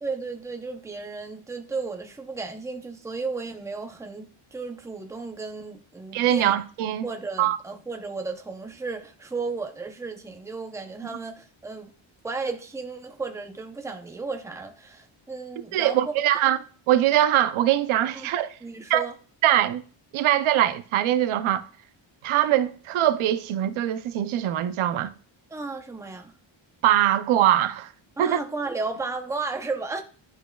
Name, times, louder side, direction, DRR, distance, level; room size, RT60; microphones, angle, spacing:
voice 1, 0.0-4.3 4.5-6.6 7.0-11.9 12.2-16.0 16.3-16.5 18.2-18.3 18.6-19.1 25.5-26.3 28.2-30.0, right 4 dB, 5° right, 0.6 m, -34 dB
voice 2, 6.1-7.1 7.4-7.6 15.7-16.6 16.9-18.6 18.9-19.1 19.4-19.8 20.1-21.6 22.2-25.1 26.8-27.9 28.2-28.4, right 12 dB, 85° right, 0.6 m, -22 dB
11.0 x 4.6 x 2.3 m
cardioid pair, 150°, 48 cm